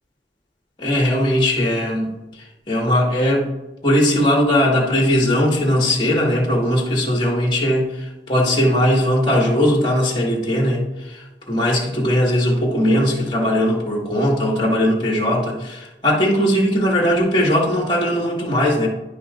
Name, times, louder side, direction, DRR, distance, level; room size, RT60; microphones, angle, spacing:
voice 1, 0.8-3.5 3.8-18.9, equal, 25° left, -2 dB, 1.7 m, -19 dB
10.5 x 5.6 x 2.5 m, 1.0 s
head